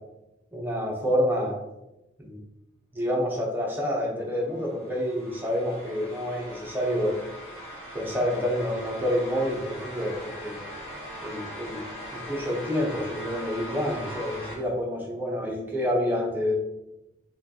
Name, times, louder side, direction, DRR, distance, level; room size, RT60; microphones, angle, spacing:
voice 1, 0.5-1.6 2.2-2.4 2.9-7.2 7.9-10.6 11.2-16.5, equal, 10° right, -2 dB, 0.8 m, -28 dB
sound 1, 4.5-14.6, equal, 5° left, 1.3 m, -40 dB
5.7 x 2.3 x 2.8 m, 0.94 s
head